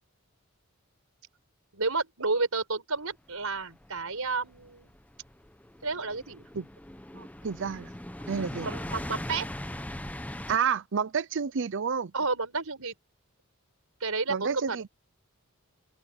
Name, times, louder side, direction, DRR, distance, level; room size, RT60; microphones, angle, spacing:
voice 1, 1.7-4.9 5.8-6.5 7.1-7.3 8.5-9.5 12.1-12.9 14.0-14.8, right 3 dB, 75° right, 5.1 m, -31 dB
sound 1, 3.5-10.6, left 1 dB, 5° left, 0.9 m, -40 dB
voice 2, 7.4-7.9 8.3-8.7 10.5-12.1 14.3-14.9, right 6 dB, 55° right, 0.6 m, -29 dB
open air
head